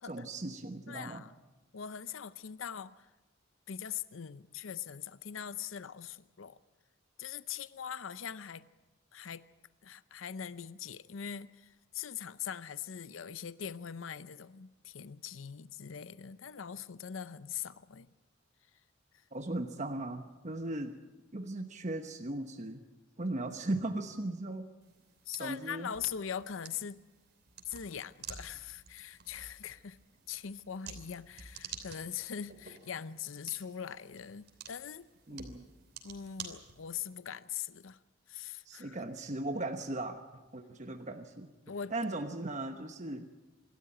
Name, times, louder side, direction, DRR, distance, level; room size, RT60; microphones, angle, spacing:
voice 1, 0.1-1.2 19.3-21.0 21.3-22.8 23.2-24.7 25.4-25.9 35.3-35.7 38.6-41.5 41.9-43.3, right 2 dB, 35° right, 6 dB, 1.1 m, -37 dB
voice 2, 0.9-1.3 1.7-3.1 3.7-6.6 7.2-8.6 9.1-9.4 9.8-18.1 25.3-27.0 27.7-30.0 30.3-35.5 36.0-38.0 38.3-39.0 41.7-41.9, left 8 dB, 85° left, 15 dB, 0.6 m, -42 dB
sound 1, 24.8-37.2, right 6 dB, 55° right, 3.0 m, -51 dB
26.5 x 13.0 x 9.0 m, 1.2 s
head